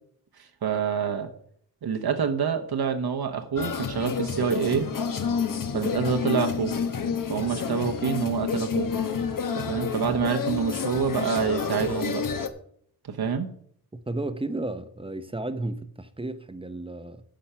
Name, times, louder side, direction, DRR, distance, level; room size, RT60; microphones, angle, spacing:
voice 1, 0.4-1.3 1.8-4.9 5.7-6.8 7.3-8.9 9.6-12.2 13.0-13.5, right 6 dB, 70° right, 1.0 m, -27 dB
sound 1, 3.6-12.5, left 6 dB, 55° left, 1.0 m, -29 dB
voice 2, 13.9-17.2, right 2 dB, 15° right, 0.7 m, -33 dB
10.5 x 7.1 x 5.7 m
wide cardioid pair, 105°, 38 cm